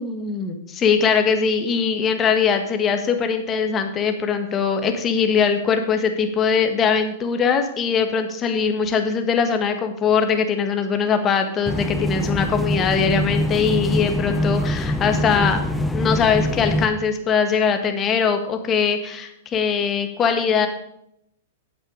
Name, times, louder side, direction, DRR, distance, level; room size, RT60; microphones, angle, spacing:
voice 1, 0.0-15.6 15.9-20.7, left 6 dB, 25° left, 6 dB, 1.5 m, -21 dB
sound 1, 11.7-16.9, left 1 dB, 5° left, 0.8 m, -24 dB
8.9 x 8.0 x 5.1 m, 0.79 s
hypercardioid pair, 125°, 0 cm